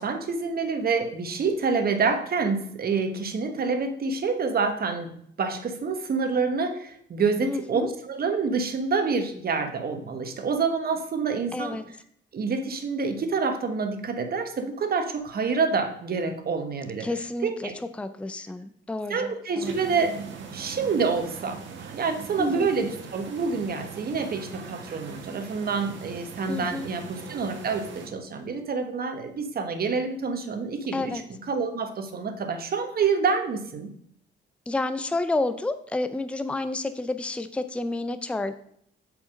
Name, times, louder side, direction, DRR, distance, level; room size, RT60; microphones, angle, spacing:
voice 1, 0.0-11.8 12.3-17.1 17.4-17.7 19.1-20.1 20.5-33.9, right 4 dB, 50° right, 7 dB, 1.3 m, -27 dB
voice 2, 7.4-7.9 11.5-11.9 17.0-17.7 18.0-19.8 22.4-22.7 26.5-26.9 30.9-31.2 34.7-38.5, left 2 dB, 5° left, 10 dB, 0.5 m, -30 dB
sound 1, 19.6-28.1, right 5 dB, 70° right, 1.4 m, -41 dB
6.9 x 5.0 x 5.1 m, 0.67 s
cardioid pair, 90°, 20 cm